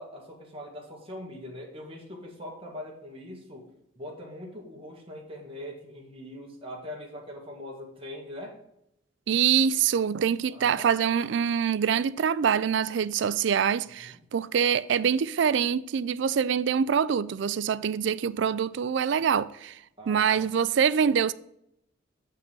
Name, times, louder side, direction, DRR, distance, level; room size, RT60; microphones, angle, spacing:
voice 1, 0.0-3.7 4.0-8.6 10.5-10.9 14.0-14.2 20.0-20.5, left 1 dB, 30° right, 2.1 m, -42 dB
voice 2, 9.3-19.8 20.1-21.3, right 7 dB, 65° right, 0.4 m, -25 dB
7.4 x 5.5 x 5.3 m
head